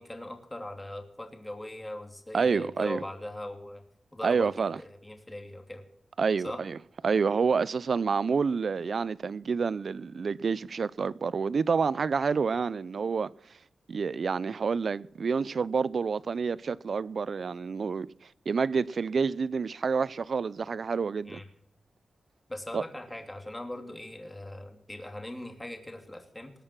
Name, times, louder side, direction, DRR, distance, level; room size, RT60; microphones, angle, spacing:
voice 1, 0.0-3.8 4.1-4.5 4.8-5.9 6.4-6.6 21.2-21.4 22.5-26.5, left 1 dB, 10° left, 2.8 m, -40 dB
voice 2, 2.3-3.0 4.2-4.8 6.2-6.8 7.0-13.6 13.9-21.4 22.7-22.8, right 5 dB, 55° right, 0.5 m, -28 dB
20.5 x 8.8 x 6.0 m
wide cardioid pair, 100°, 0 cm